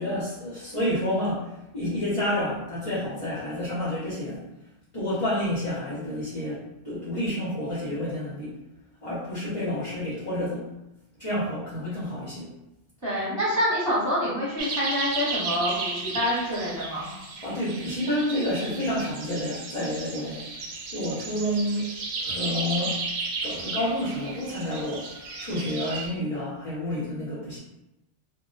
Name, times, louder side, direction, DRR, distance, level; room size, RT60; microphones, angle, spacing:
voice 1, 0.0-4.4 4.9-6.6 6.8-8.5 9.0-10.7 11.2-12.5 17.4-20.4 20.9-21.9 22.2-23.0 23.4-25.1 25.4-27.6, left 1 dB, 35° left, -8 dB, 0.6 m, -29 dB
voice 2, 13.0-17.1, equal, 15° right, -8 dB, 0.9 m, -26 dB
sound 1, 14.6-26.1, right 3 dB, 85° right, 0.9 m, -34 dB
2.2 x 2.1 x 3.8 m, 0.93 s
omnidirectional pair, 1.2 m